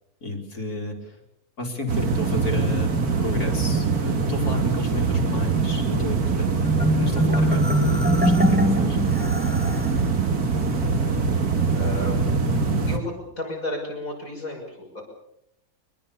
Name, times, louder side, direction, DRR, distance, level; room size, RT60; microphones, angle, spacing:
voice 1, 0.2-1.2 1.6-2.9 3.2-9.1, left 1 dB, 85° left, 1 dB, 4.3 m, -32 dB
sound 1, 1.9-13.0, right 4 dB, 80° right, 2.6 m, -23 dB
Marimba xylophone, 6.7-10.0, equal, 5° right, 2.4 m, -22 dB
voice 2, 11.3-12.3 12.9-15.0, left 1 dB, 60° left, 1 dB, 6.6 m, -33 dB
24.0 x 21.0 x 6.9 m, 0.79 s
omnidirectional pair, 1.6 m